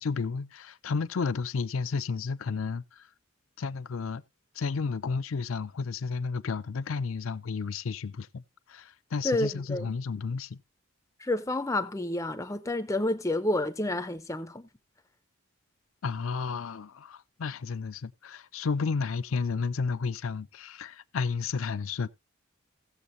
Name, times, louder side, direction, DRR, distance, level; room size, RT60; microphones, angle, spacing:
voice 1, 0.0-3.0 3.6-4.2 4.6-8.4 8.7-10.6 16.0-22.1, left 5 dB, 75° left, 0.5 m, -32 dB
voice 2, 9.2-9.9 11.2-14.7, left 1 dB, 15° left, 0.5 m, -29 dB
17.0 x 7.1 x 2.6 m
head